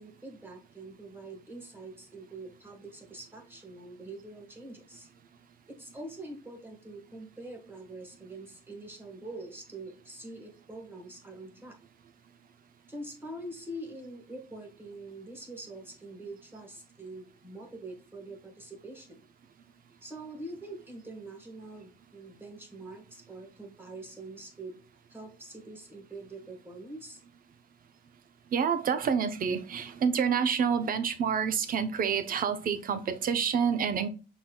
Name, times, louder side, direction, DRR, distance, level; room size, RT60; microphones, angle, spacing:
voice 1, 0.0-5.1 5.7-11.8 12.9-19.2 20.0-24.8 25.1-27.2, right 2 dB, 10° right, 1.6 m, -44 dB
voice 2, 28.5-34.1, right 7 dB, 50° right, 0.6 m, -28 dB
6.0 x 3.9 x 2.2 m
cardioid pair, 130°, 19 cm